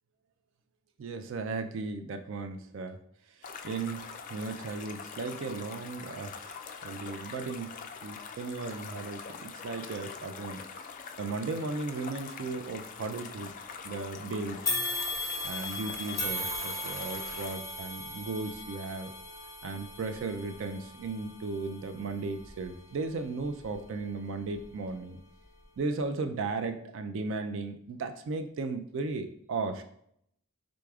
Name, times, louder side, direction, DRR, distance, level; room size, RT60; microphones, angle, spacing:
voice 1, 1.0-3.0 3.3-7.7 8.0-10.6 11.2-13.5 13.8-14.7 15.4-19.1 19.6-25.2 25.8-29.8, right 3 dB, 60° right, 7 dB, 0.3 m, -36 dB
sound 1, 3.4-17.5, left 6 dB, 35° left, 0.3 m, -44 dB
sound 2, 14.7-24.0 24.5-24.6 25.6-25.7, left 2 dB, 15° left, 0.7 m, -38 dB
4.8 x 3.8 x 2.3 m, 0.70 s
head